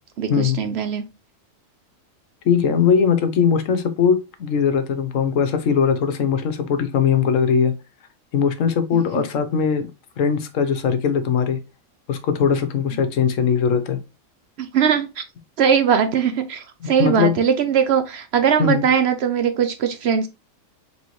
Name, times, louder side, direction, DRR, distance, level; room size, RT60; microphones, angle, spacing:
voice 1, 0.2-1.0 8.9-9.0 14.6-15.2 15.6-20.3, right 7 dB, 65° right, 0.7 m, -20 dB
voice 2, 2.4-7.7 8.3-9.9 10.2-11.6 12.1-14.0 16.8-17.4 18.6-18.8, left 7 dB, 75° left, 1.1 m, -20 dB
4.2 x 3.4 x 3.0 m
omnidirectional pair, 1.4 m